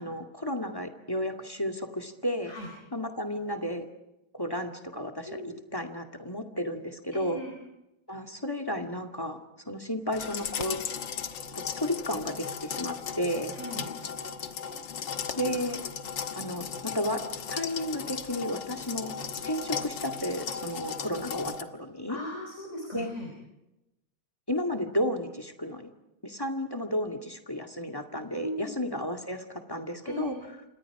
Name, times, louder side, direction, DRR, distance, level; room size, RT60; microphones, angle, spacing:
voice 1, 0.0-2.5 2.9-3.8 4.3-5.3 5.7-7.4 8.1-9.4 9.7-10.8 11.7-13.5 15.4-15.8 16.3-17.2 17.5-19.1 19.4-22.2 22.9-23.1 24.5-25.9 26.2-30.3, equal, 10° left, 7 dB, 2.1 m, -32 dB
voice 2, 7.1-7.6 13.5-13.9 15.5-15.6 16.7-16.9 22.1-23.3 28.4-28.8 30.0-30.5, equal, 35° left, 0 dB, 5.1 m, -38 dB
sound 1, 10.1-21.6, left 7 dB, 65° left, 1.9 m, -36 dB
29.0 x 26.5 x 4.9 m, 0.94 s
omnidirectional pair, 2.2 m